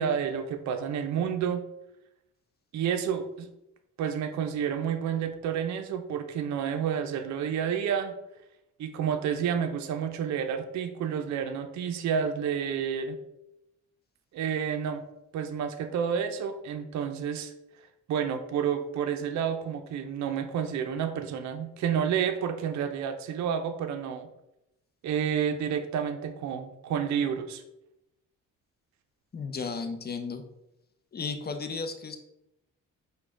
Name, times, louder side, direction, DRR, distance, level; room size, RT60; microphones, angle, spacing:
voice 1, 0.0-1.6 2.7-3.5 4.0-8.1 8.8-13.2 14.3-15.0 15.3-17.5 18.1-24.3 25.0-27.6, right 8 dB, 55° right, 7 dB, 0.5 m, -30 dB
voice 2, 29.3-30.4 31.1-32.2, left 4 dB, 30° left, 7 dB, 0.6 m, -34 dB
4.8 x 2.2 x 3.6 m, 0.87 s
supercardioid pair, 55°, 34 cm